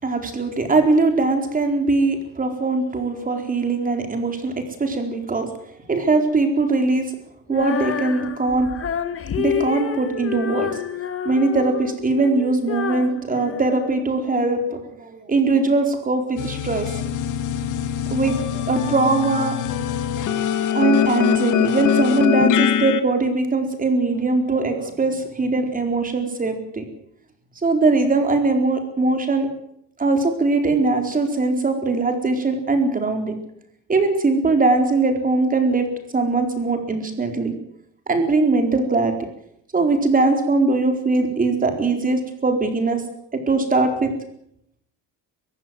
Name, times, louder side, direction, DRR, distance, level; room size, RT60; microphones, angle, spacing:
voice 1, 0.0-5.5 5.9-7.0 7.5-8.7 9.4-10.7 11.2-16.9 18.1-19.7 20.7-26.8 27.6-29.5 30.0-33.3 33.9-35.9 36.1-37.5 38.1-39.1 39.7-43.0 43.5-44.1, right 3 dB, 25° right, 5 dB, 4.4 m, -21 dB
Female singing, 7.5-14.5, left 8 dB, 40° left, 1.7 m, -29 dB
sound 1, 16.4-23.0, left 9 dB, 60° left, 1.9 m, -22 dB
22.5 x 15.5 x 7.9 m, 0.73 s
cardioid pair, 125°, 35 cm